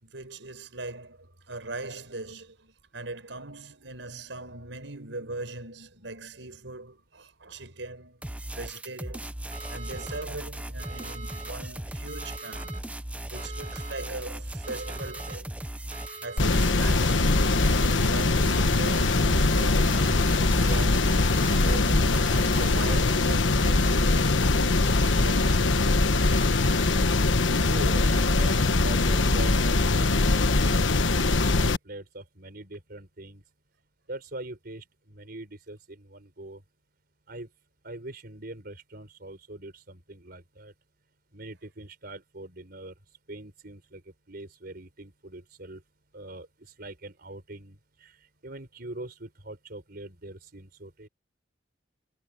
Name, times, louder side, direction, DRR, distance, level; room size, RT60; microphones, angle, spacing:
voice 1, 0.0-8.2 8.6-9.4 9.7-12.8 13.3-15.5 16.2-20.0 20.4-24.9 25.2-25.6, right 2 dB, 80° right, 5.1 m, -40 dB
sound 1, 8.2-23.0, right 1 dB, 5° right, 0.7 m, -37 dB
sound 2, 9.5-10.2 10.8-11.5 12.1-12.8 13.4-14.1 14.6-15.4 15.9-16.6 17.2-17.9 18.5-19.2 19.8-20.5 21.0-21.8 22.3-23.1 23.6-24.3 24.9-25.6 26.2-26.9, right 4 dB, 40° right, 2.8 m, -44 dB
sound 3, 16.4-31.8, left 2 dB, 90° left, 1.3 m, -22 dB
voice 2, 27.6-30.9 31.1-33.4 34.1-36.6 37.3-37.5 37.8-40.7 41.3-42.9 43.3-44.0 44.3-45.8 46.1-51.1, right 2 dB, 55° right, 4.8 m, -42 dB
head